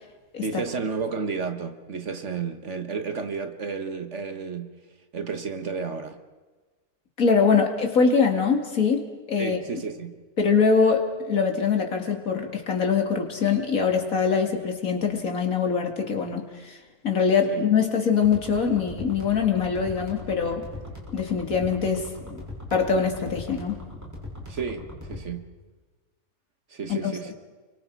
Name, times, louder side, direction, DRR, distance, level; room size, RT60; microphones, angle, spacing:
voice 1, 0.4-4.8 5.1-6.2 9.4-10.1 17.5-17.7 24.5-25.5 26.7-27.3, right 5 dB, 55° right, 1.6 m, -32 dB
voice 2, 7.2-9.6 10.4-16.8 17.0-20.6 21.1-22.4 22.7-23.8 26.9-27.1, left 5 dB, 65° left, 2.6 m, -23 dB
sound 1, 18.2-25.2, left 1 dB, 10° right, 6.2 m, -40 dB
29.0 x 23.5 x 4.7 m
omnidirectional pair, 1.6 m